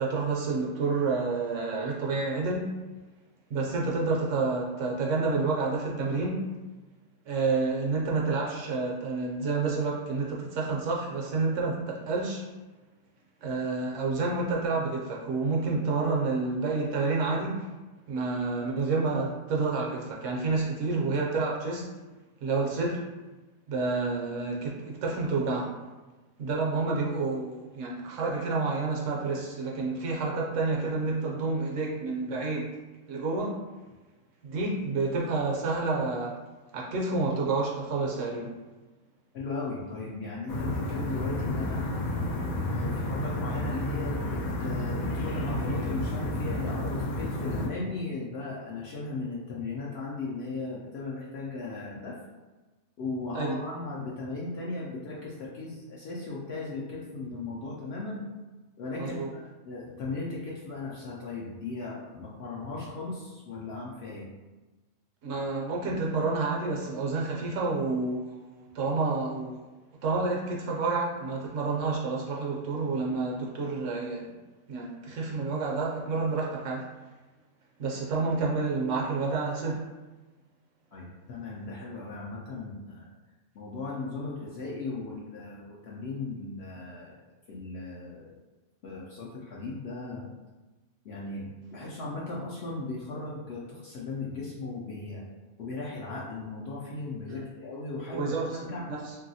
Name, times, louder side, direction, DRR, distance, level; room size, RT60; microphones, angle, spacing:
voice 1, 0.0-2.7 3.5-6.5 7.3-12.4 13.4-17.7 18.1-21.9 22.4-23.0 23.7-25.8 26.4-32.7 33.1-33.6 34.4-36.4 36.7-38.5 53.3-53.6 59.0-59.3 65.2-69.7 70.0-74.3 74.7-76.9 77.8-79.9 97.3-97.4 98.1-98.6 98.9-99.1, right 3 dB, 70° right, -2 dB, 0.9 m, -29 dB
voice 2, 39.3-41.8 42.7-52.2 53.0-58.2 58.8-64.3 80.9-83.1 83.5-87.2 87.5-88.4 88.8-90.3 91.0-95.2 95.6-98.8, left 3 dB, 65° left, -5 dB, 0.7 m, -37 dB
sound 1, 40.5-47.7, left 1 dB, 80° left, 1.1 m, -31 dB
2.9 x 2.7 x 2.7 m, 1.2 s
omnidirectional pair, 1.5 m